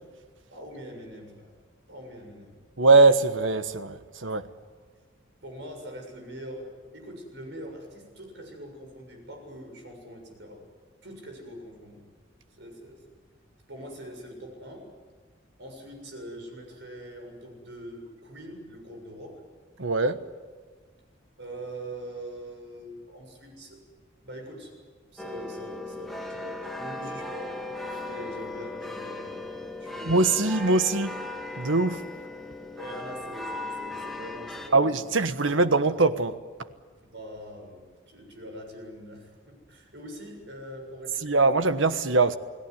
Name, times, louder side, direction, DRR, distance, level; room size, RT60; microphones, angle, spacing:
voice 1, 0.5-1.5 1.9-2.6 5.4-10.6 11.0-12.0 12.6-13.0 13.7-14.9 15.6-19.4 21.4-23.8 24.2-24.7 25.1-27.6 28.0-29.5 29.8-30.5 32.7-35.2 37.1-41.5, equal, 65° right, 7.2 m, -43 dB
voice 2, 2.8-4.4 19.8-20.2 30.0-31.1 31.6-32.0 34.7-36.3 41.2-42.4, right 3 dB, 85° right, 1.3 m, -22 dB
sound 1, 25.2-34.7, left 2 dB, ahead, 2.3 m, -37 dB
29.5 x 18.5 x 9.7 m
head